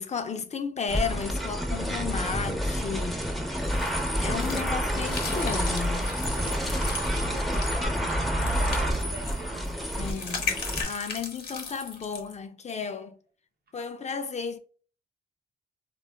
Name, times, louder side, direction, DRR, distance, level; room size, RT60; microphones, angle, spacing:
voice 1, 0.0-3.2 4.2-6.1 7.2-7.4 10.0-13.1 13.7-14.6, left 6 dB, 40° left, 0.4 m, -33 dB
sound 1, 0.9-10.8, equal, ahead, 0.7 m, -28 dB
sound 2, 3.6-12.3, left 5 dB, 60° left, 0.9 m, -37 dB
voice 2, 4.9-5.3 6.0-8.0 8.4-9.8, right 4 dB, 60° right, 0.8 m, -45 dB
3.3 x 2.3 x 2.2 m
cardioid pair, 75°, 18 cm